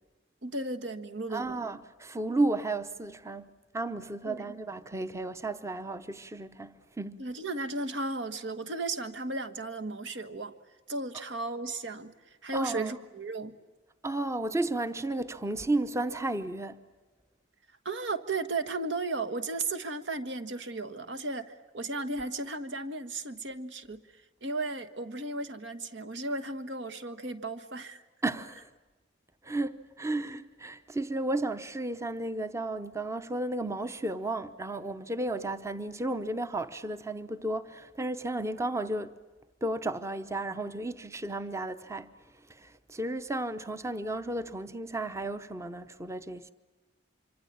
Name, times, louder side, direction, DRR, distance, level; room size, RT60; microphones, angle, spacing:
voice 1, 0.4-1.6 4.2-4.5 7.2-10.5 10.9-13.5 17.8-24.0 24.4-28.0, right 2 dB, 70° right, 1.5 m, -35 dB
voice 2, 1.3-7.3 12.5-12.9 14.0-16.8 28.2-28.7 29.4-39.2 39.6-42.1 42.5-46.5, right 2 dB, 15° right, 0.8 m, -33 dB
26.0 x 25.5 x 8.7 m
head